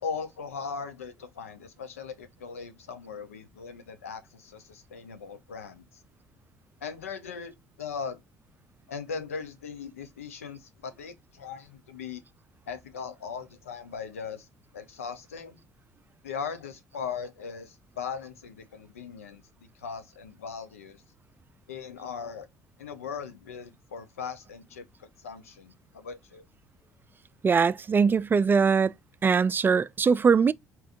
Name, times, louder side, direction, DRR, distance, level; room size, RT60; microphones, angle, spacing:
voice 1, 0.0-6.0 6.8-8.2 8.9-12.2 12.7-14.5 14.7-15.6 16.2-19.4 19.7-21.0 21.7-22.5 22.8-26.4, left 6 dB, 80° left, 0.6 m, -39 dB
voice 2, 27.4-28.9 29.2-30.5, right 5 dB, 25° right, 0.3 m, -21 dB
4.4 x 3.4 x 2.4 m
figure-of-eight pair, 50°, 8 cm